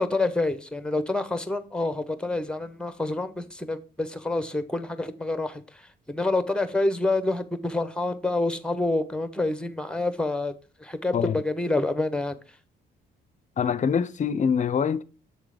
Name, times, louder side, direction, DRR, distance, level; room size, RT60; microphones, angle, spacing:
voice 1, 0.0-10.5 10.8-12.3, left 2 dB, 5° left, 0.8 m, -27 dB
voice 2, 13.6-15.0, left 7 dB, 40° left, 0.5 m, -24 dB
7.2 x 3.9 x 4.8 m
cardioid pair, 90°, 20 cm